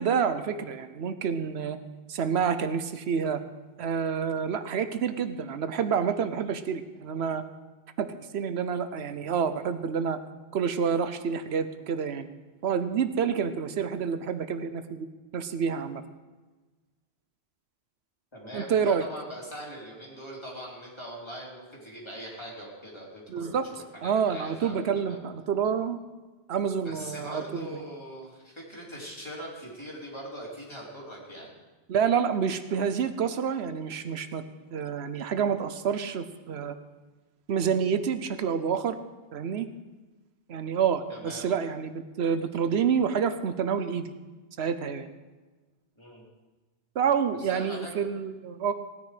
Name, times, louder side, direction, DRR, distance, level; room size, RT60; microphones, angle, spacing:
voice 1, 0.0-1.8 2.1-3.4 3.8-7.4 8.0-8.1 8.3-10.2 10.5-12.3 12.6-15.1 15.3-16.0 18.5-19.1 23.3-23.7 24.0-26.0 26.5-27.7 31.9-34.4 34.7-36.7 37.5-39.0 39.3-39.7 40.5-44.1 44.6-45.1 46.9-48.7, right 7 dB, 90° right, 10 dB, 1.0 m, -28 dB
voice 2, 18.3-25.2 26.8-31.5 41.1-41.5 45.9-46.3 47.4-47.9, equal, 25° left, -4 dB, 3.3 m, -41 dB
17.0 x 9.6 x 5.0 m, 1.2 s
omnidirectional pair, 1.0 m